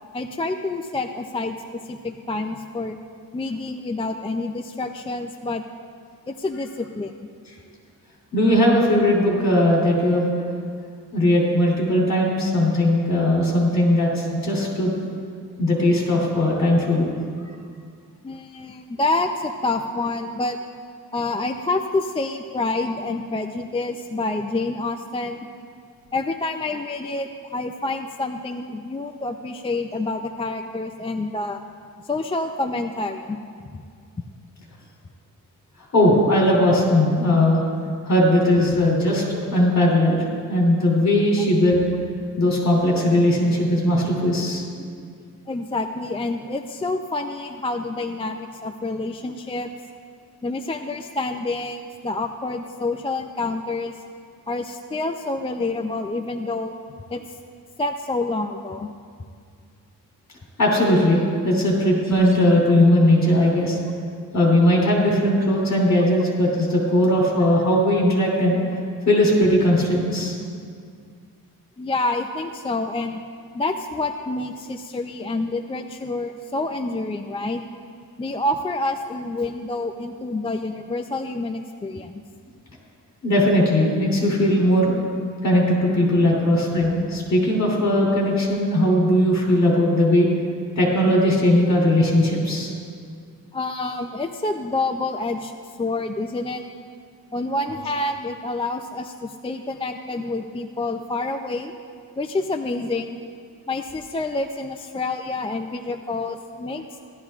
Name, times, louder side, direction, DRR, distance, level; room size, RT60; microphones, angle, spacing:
voice 1, 0.1-3.0 3.3-5.6 6.3-7.1 18.2-20.6 21.1-25.5 26.1-31.6 32.0-33.8 45.5-49.7 50.4-54.0 54.5-56.7 57.1-57.2 57.8-58.9 71.8-73.2 73.5-77.6 78.2-82.2 93.5-95.5 95.8-96.6 97.3-101.7 102.2-103.2 103.7-107.0, left 2 dB, 15° left, 5 dB, 0.3 m, -28 dB
voice 2, 8.3-10.3 11.1-15.0 15.6-17.1 35.9-37.6 38.0-41.9 42.4-44.6 60.6-63.8 64.3-68.6 69.0-70.3 83.2-84.9 85.4-90.3 90.8-92.7, left 1 dB, 50° left, -3 dB, 3.1 m, -19 dB
16.5 x 12.5 x 2.4 m, 2.2 s
wide cardioid pair, 150°, 36 cm